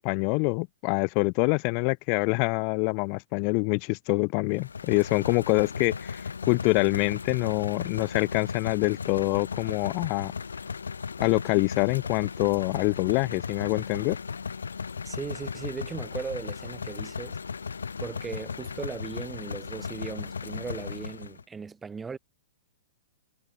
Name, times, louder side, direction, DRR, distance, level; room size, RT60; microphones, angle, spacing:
voice 1, 0.0-10.3 11.2-14.2, left 40 dB or more, 40° left, 3.3 m, -25 dB
sound 1, 4.5-21.4, left 5 dB, 80° left, 4.3 m, -36 dB
voice 2, 15.0-17.4 18.0-22.2, right 5 dB, 15° right, 5.9 m, -37 dB
figure-of-eight pair, 110°, 0 cm